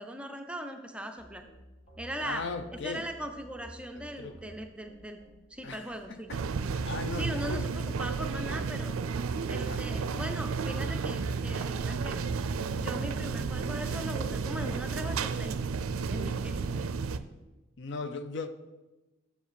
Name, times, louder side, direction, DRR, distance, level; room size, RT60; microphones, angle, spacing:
voice 1, 0.0-1.4 2.0-2.4 2.8-5.2 5.5-6.3 7.2-9.0 9.5-12.2 12.8-15.5 16.1-16.6, equal, 5° right, 0.4 m, -39 dB
sound 1, 1.2-16.7, equal, 30° left, 2.6 m, -52 dB
voice 2, 2.2-3.1 4.0-4.4 5.6-6.4 6.7-7.7 8.5-8.7 9.6-9.8 17.8-18.5, left 4 dB, 60° left, 0.5 m, -38 dB
sound 2, 6.3-17.2, right 5 dB, 90° right, 0.4 m, -32 dB
6.7 x 5.1 x 6.8 m
head